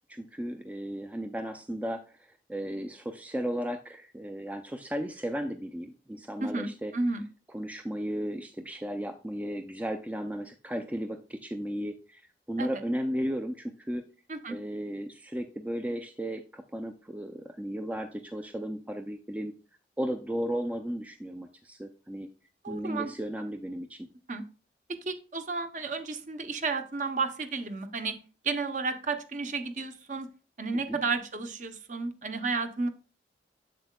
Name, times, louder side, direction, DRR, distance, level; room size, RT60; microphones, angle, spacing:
voice 1, 0.1-6.9 7.5-14.0 14.5-19.5 20.0-22.3 22.7-24.1 30.7-31.0, equal, 10° right, 6 dB, 0.3 m, -35 dB
voice 2, 6.4-7.2 12.6-12.8 14.3-14.6 22.6-23.1 24.3-24.4 25.1-28.2 28.4-30.3 30.6-32.9, right 3 dB, 45° right, 8 dB, 0.7 m, -32 dB
7.6 x 7.1 x 2.2 m, 0.37 s
head